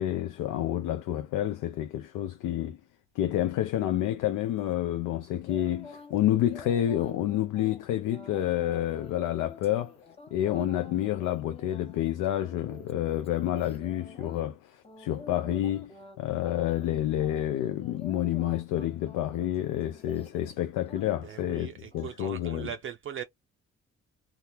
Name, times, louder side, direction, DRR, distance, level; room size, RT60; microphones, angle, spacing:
voice 1, 0.0-2.8 3.2-9.9 10.3-22.7, left 12 dB, 90° left, 0.5 m, -29 dB
sound 1, 5.5-6.2 6.5-14.5 14.8-16.2 16.4-16.9 17.2-20.6 20.9-21.5 21.9-22.1, left 3 dB, 20° left, 1.0 m, -49 dB
voice 2, 21.2-23.2, right 8 dB, 45° right, 0.4 m, -39 dB
2.8 x 2.3 x 3.3 m
cardioid pair, 90°, 30 cm